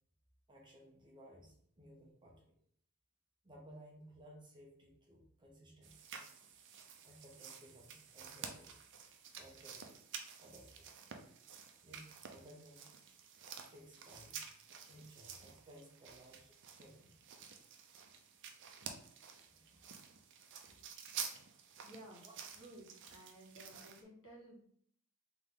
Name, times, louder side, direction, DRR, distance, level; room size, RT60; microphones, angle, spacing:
voice 1, 0.5-2.5 3.4-6.1 7.0-8.8 9.3-9.8 10.4-10.9 11.8-12.9 13.7-14.5 14.8-17.2 19.4-20.0 22.2-22.3, right 1 dB, 20° right, -2 dB, 0.9 m, -59 dB
sound 1, 5.8-24.0, right 7 dB, 55° right, 0.5 m, -51 dB
voice 2, 21.8-22.3 22.5-24.6, right 1 dB, 60° left, -3 dB, 1.7 m, -55 dB
3.7 x 3.2 x 3.7 m, 0.64 s
head